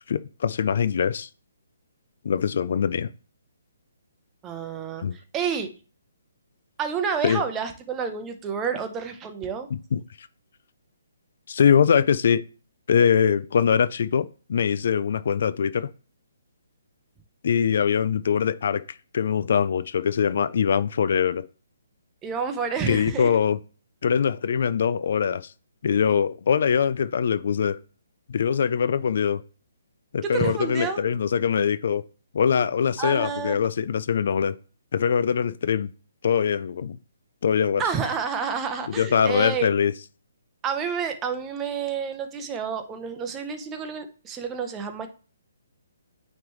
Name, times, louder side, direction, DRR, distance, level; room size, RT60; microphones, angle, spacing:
voice 1, 0.1-1.3 2.2-3.1 5.0-5.1 7.2-7.4 9.9-10.3 11.5-12.4 12.9-15.9 17.4-21.5 22.9-23.6 24.0-25.5 25.8-27.8 28.3-29.4 30.1-32.0 32.3-34.5 34.9-35.9 36.2-37.0 37.4-37.8 39.0-39.9, left 7 dB, 55° left, 0.4 m, -22 dB
voice 2, 4.4-5.7 6.8-9.7 22.2-23.3 30.2-31.0 33.0-33.6 37.8-39.7 40.6-45.1, right 6 dB, 15° right, 0.9 m, -29 dB
9.1 x 3.3 x 3.2 m
figure-of-eight pair, 140°, 0 cm